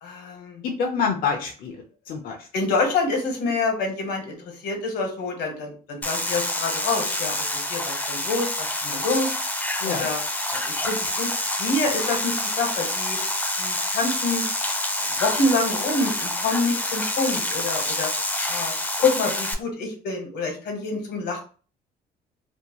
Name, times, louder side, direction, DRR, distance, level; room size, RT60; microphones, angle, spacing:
voice 1, 0.0-0.6 2.5-9.4 9.8-10.2 10.5-11.3 11.6-13.2 13.6-14.4 15.0-18.1 18.5-18.7 19.0-21.4, left 3 dB, 80° left, 3 dB, 1.0 m, -27 dB
voice 2, 0.6-1.8 2.1-2.5 9.8-10.1, left 5 dB, 60° left, 2 dB, 0.5 m, -26 dB
sound 1, 6.0-19.5, left 1 dB, 10° left, 0.4 m, -27 dB
2.6 x 2.1 x 2.9 m, 0.39 s
cardioid pair, 110°, 17 cm